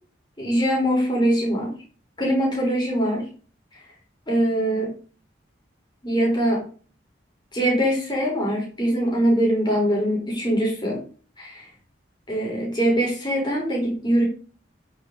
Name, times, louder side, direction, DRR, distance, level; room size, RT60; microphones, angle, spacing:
voice 1, 0.4-1.7 2.2-3.3 4.3-4.9 6.0-6.6 7.5-11.0 11.4-11.7 12.3-14.2, right 1 dB, 25° left, -2 dB, 4.0 m, -22 dB
9.2 x 6.6 x 3.9 m, 0.40 s
head